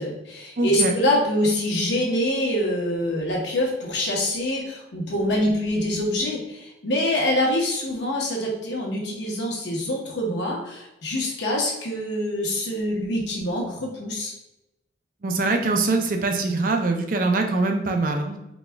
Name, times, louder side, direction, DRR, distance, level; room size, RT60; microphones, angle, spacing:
voice 1, 0.0-14.3, left 1 dB, 75° left, -2 dB, 1.0 m, -25 dB
voice 2, 0.6-0.9 15.2-18.4, right 3 dB, 50° right, 4 dB, 0.5 m, -23 dB
4.0 x 2.3 x 3.4 m, 0.92 s
head